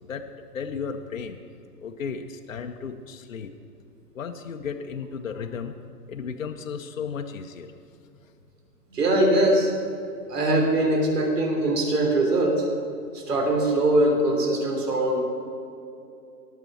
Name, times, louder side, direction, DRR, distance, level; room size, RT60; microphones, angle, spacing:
voice 1, 0.0-1.4 1.8-3.5 4.1-5.7 6.1-7.7, left 6 dB, 55° left, 5 dB, 0.7 m, -34 dB
voice 2, 8.9-9.7 10.3-12.6 13.1-15.2, right 1 dB, 75° right, 0 dB, 3.3 m, -22 dB
18.5 x 6.8 x 6.1 m, 2.6 s
hypercardioid pair, 180°, 48 cm